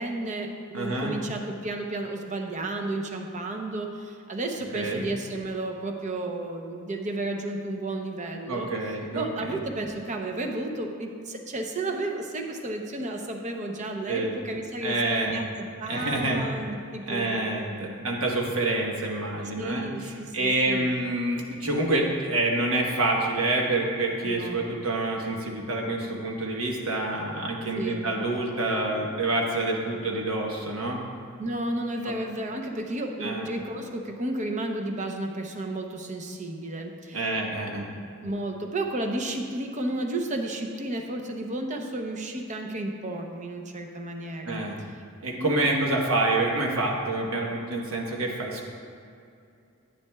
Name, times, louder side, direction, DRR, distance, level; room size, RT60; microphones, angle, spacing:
voice 1, 0.0-18.0 19.5-20.9 24.2-24.8 27.8-28.1 31.4-37.3 38.2-44.6 45.4-46.0, right 2 dB, 35° right, 3 dB, 0.7 m, -32 dB
voice 2, 0.7-1.1 4.7-5.0 8.5-9.6 14.1-14.3 14.8-15.4 15.9-16.4 17.1-31.0 32.0-32.1 33.2-33.5 37.1-37.9 44.4-44.8 45.2-48.7, right 2 dB, 75° right, -1 dB, 1.2 m, -27 dB
10.0 x 9.4 x 2.3 m, 2.5 s
head